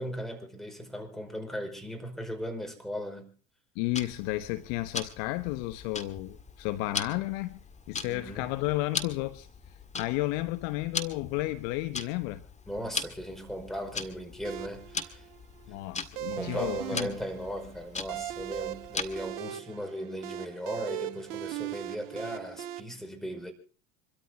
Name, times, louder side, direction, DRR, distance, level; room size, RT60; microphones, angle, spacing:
voice 1, 0.0-3.3 8.0-8.5 12.7-15.2 16.3-23.5, equal, ahead, 5.3 m, -37 dB
voice 2, 3.7-7.6 7.9-9.5 9.9-12.4 15.7-17.1, left 18 dB, 60° left, 1.2 m, -32 dB
Tick-tock, 3.9-19.4, left 4 dB, 20° left, 1.9 m, -40 dB
sound 1, 14.4-22.8, right 13 dB, 60° right, 1.4 m, -39 dB
26.5 x 13.5 x 3.7 m
hypercardioid pair, 80°, 39 cm